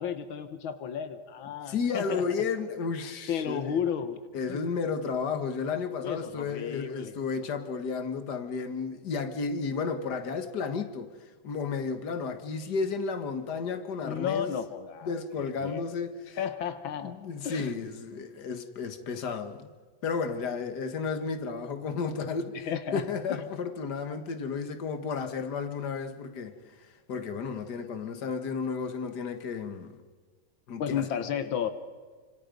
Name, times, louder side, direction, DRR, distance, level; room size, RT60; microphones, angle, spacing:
voice 1, 0.0-2.2 3.0-4.2 4.5-4.6 6.0-7.1 14.0-15.8 16.4-17.1 17.4-17.7 22.5-23.4 30.8-31.7, left 8 dB, 80° left, 1.9 m, -33 dB
voice 2, 1.7-3.8 4.3-11.1 11.4-14.5 15.0-16.4 17.0-19.7 20.0-22.6 22.9-30.0 30.7-31.0, left 5 dB, 55° left, 2.1 m, -33 dB
29.5 x 26.5 x 5.3 m
omnidirectional pair, 2.1 m